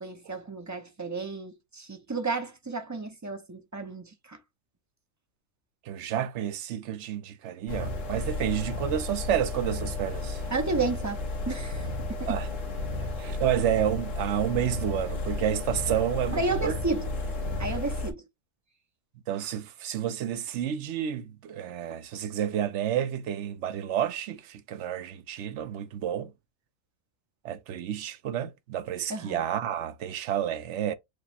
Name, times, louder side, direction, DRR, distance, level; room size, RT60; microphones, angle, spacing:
voice 1, 0.0-4.4 10.5-12.3 16.3-17.1 17.6-18.2 29.1-29.4, right 3 dB, 30° right, 0.3 m, -32 dB
voice 2, 5.9-10.4 12.3-12.5 13.2-16.8 19.3-26.3 27.4-30.9, right 10 dB, 65° right, 0.8 m, -30 dB
sound 1, 7.7-18.1, left 2 dB, 65° left, 1.6 m, -33 dB
4.8 x 2.1 x 4.2 m
omnidirectional pair, 1.4 m